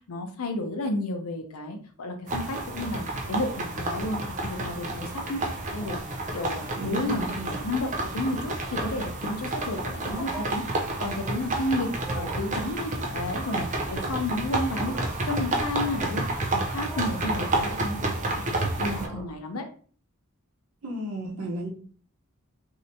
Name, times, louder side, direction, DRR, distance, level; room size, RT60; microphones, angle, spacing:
voice 1, 0.1-19.7, left 2 dB, 90° left, 5 dB, 0.6 m, -32 dB
sound 1, 2.3-19.1, right 2 dB, 35° right, 0.6 m, -30 dB
sound 2, 5.5-6.1 6.6-6.8 7.2-7.4 8.0-8.1 8.4-9.1 9.9-10.4 11.9-12.5 13.6-14.2 14.5-15.2 15.7-16.2 16.9-17.3 17.7-18.4 18.7-19.4, right 2 dB, 10° right, 0.9 m, -42 dB
voice 2, 6.8-7.5 20.8-21.7, equal, 85° right, 0 dB, 0.9 m, -33 dB
3.2 x 2.8 x 2.7 m, 0.43 s
head